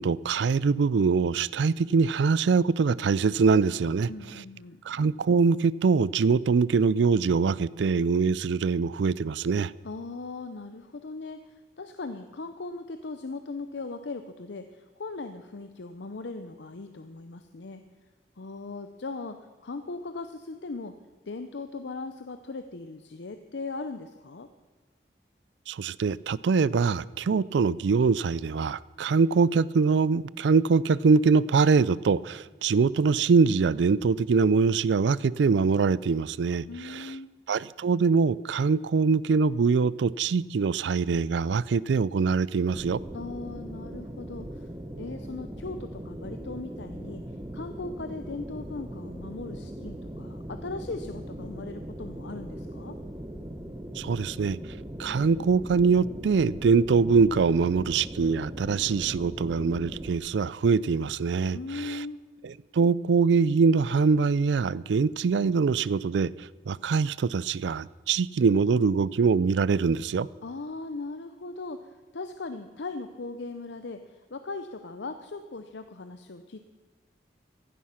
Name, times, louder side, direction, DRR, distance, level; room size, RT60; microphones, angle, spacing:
voice 1, 0.0-4.1 4.9-9.7 25.7-37.1 37.5-43.0 54.0-54.6 55.0-62.0 62.4-70.3, right 5 dB, 85° right, 0.4 m, -23 dB
voice 2, 4.1-4.8 9.8-17.8 18.4-21.0 21.3-24.5 36.7-37.3 43.1-44.7 45.0-53.0 61.5-62.3 70.4-76.6, left 3 dB, 80° left, 0.7 m, -39 dB
sound 1, 42.7-60.2, right 1 dB, 20° right, 0.8 m, -40 dB
15.5 x 11.0 x 5.8 m
head